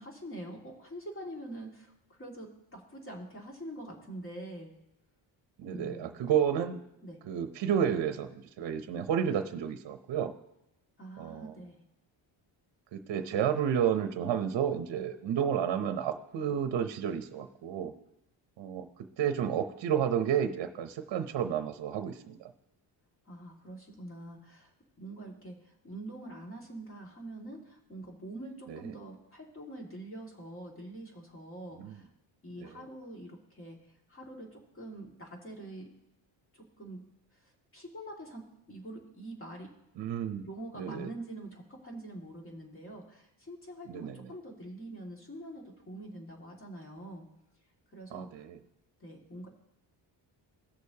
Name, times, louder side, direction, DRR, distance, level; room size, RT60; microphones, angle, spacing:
voice 1, 0.0-4.7 5.7-6.1 7.0-7.2 11.0-11.8 23.3-24.7 25.0-32.1 32.4-35.9 36.5-37.0 37.3-39.7 40.4-47.3 47.9-48.5 49.0-49.5, right 1 dB, 30° left, 0 dB, 2.1 m, -45 dB
voice 2, 5.6-6.8 7.3-10.3 11.2-11.5 12.9-17.9 18.6-18.9 19.2-22.5 28.7-28.8 31.8-32.0 32.6-32.8 40.0-40.5 40.7-41.1 43.9-44.2 48.1-48.6, right 8 dB, 65° right, 8 dB, 0.8 m, -31 dB
17.0 x 6.6 x 2.8 m, 0.84 s
cardioid pair, 110°, 46 cm